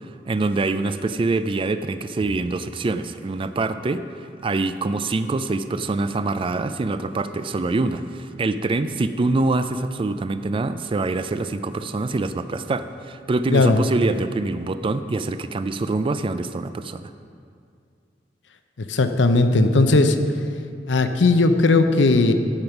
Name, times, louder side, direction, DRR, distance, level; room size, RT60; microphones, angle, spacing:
voice 1, 0.0-17.1, right 3 dB, 30° right, 11 dB, 0.3 m, -25 dB
voice 2, 13.5-13.8 18.8-20.2 20.9-22.3, left 3 dB, 75° left, 8 dB, 0.7 m, -17 dB
14.0 x 5.3 x 5.8 m, 2.3 s
head